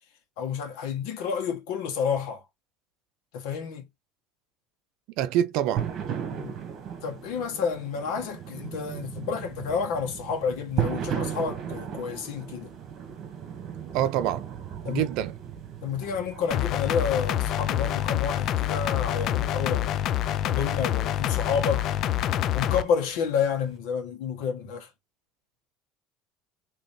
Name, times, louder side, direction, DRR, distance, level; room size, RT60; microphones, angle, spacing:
voice 1, 0.4-2.4 3.3-3.9 6.3-6.5 7.0-12.7 14.8-15.0 15.8-19.9 20.4-21.9 22.5-24.9, left 6 dB, 80° left, 1.5 m, -30 dB
voice 2, 5.2-5.9 13.9-14.5 14.9-15.4, right 11 dB, 70° right, 0.6 m, -26 dB
sound 1, 5.8-23.8, right 8 dB, 45° right, 1.4 m, -37 dB
sound 2, 16.5-22.8, left 12 dB, 50° left, 0.4 m, -27 dB
4.1 x 3.1 x 3.1 m
cardioid pair, 135°, 0 cm